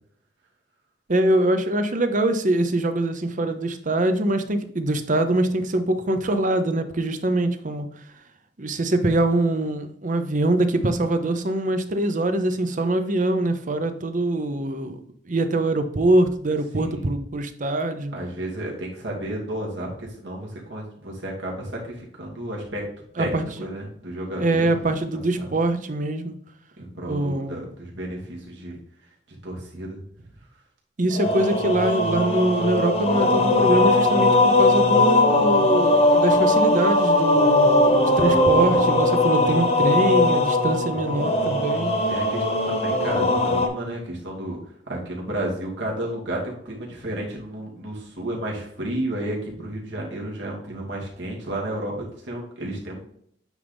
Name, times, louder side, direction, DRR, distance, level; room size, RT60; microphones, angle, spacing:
voice 1, 1.1-7.9 8.6-15.0 15.3-18.1 23.2-23.4 24.4-26.3 27.0-27.6 31.0-41.9, right 1 dB, 45° right, 8 dB, 0.8 m, -23 dB
voice 2, 16.7-17.1 18.1-22.9 23.2-24.8 25.1-25.5 26.8-28.8 29.4-30.0 42.1-44.6 44.9-53.0, right 1 dB, 75° right, -2 dB, 2.4 m, -32 dB
sound 1, 31.1-43.7, left 2 dB, 35° left, 1.2 m, -19 dB
9.2 x 4.0 x 3.5 m, 0.66 s
head